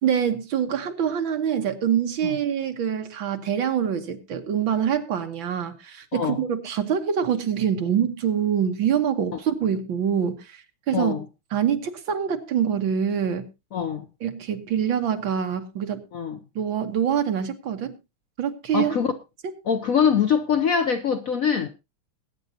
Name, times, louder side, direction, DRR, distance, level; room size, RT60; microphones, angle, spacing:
voice 1, 0.0-10.6 10.9-11.1 11.5-13.5 14.2-16.1 16.6-17.9 18.4-19.0, right 8 dB, 70° right, 2.0 m, -25 dB
voice 2, 10.9-11.2 13.7-14.1 16.1-16.4 18.7-19.1 19.7-21.7, left 7 dB, 60° left, 0.9 m, -23 dB
21.0 x 9.3 x 2.8 m
omnidirectional pair, 2.3 m